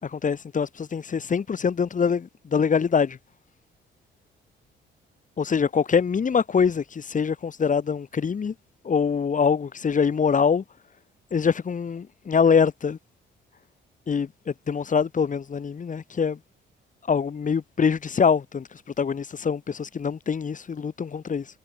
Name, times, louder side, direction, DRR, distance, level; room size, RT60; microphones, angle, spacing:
voice 1, 0.0-3.2 5.4-8.5 8.8-10.6 11.3-13.0 14.1-16.4 17.1-21.5, left 6 dB, 40° left, 3.1 m, -24 dB
cardioid pair, 90°, 20 cm